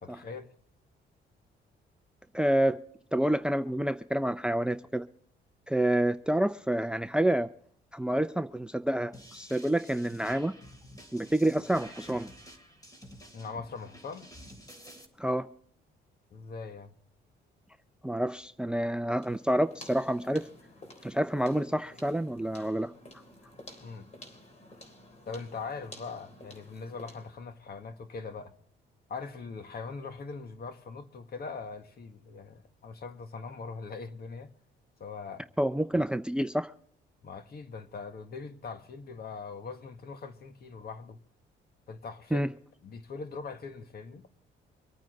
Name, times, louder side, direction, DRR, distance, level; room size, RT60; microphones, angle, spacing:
voice 1, 0.0-0.5 13.3-14.3 16.3-16.9 23.8-24.1 25.2-28.5 29.1-34.5 35.0-35.4 37.2-41.2 41.9-42.5 42.8-44.3, left 4 dB, 50° left, 1.7 m, -41 dB
voice 2, 2.3-2.8 3.1-5.0 5.7-7.5 7.9-10.5 11.1-12.3 15.2-15.5 18.0-20.4 21.0-22.9 35.6-36.7 42.3-42.5, right 1 dB, 5° right, 0.5 m, -28 dB
sound 1, 9.1-15.0, equal, 20° left, 3.3 m, -50 dB
sound 2, 19.2-27.4, left 1 dB, 35° left, 3.6 m, -52 dB
25.0 x 9.1 x 3.9 m
cardioid pair, 90°, 20 cm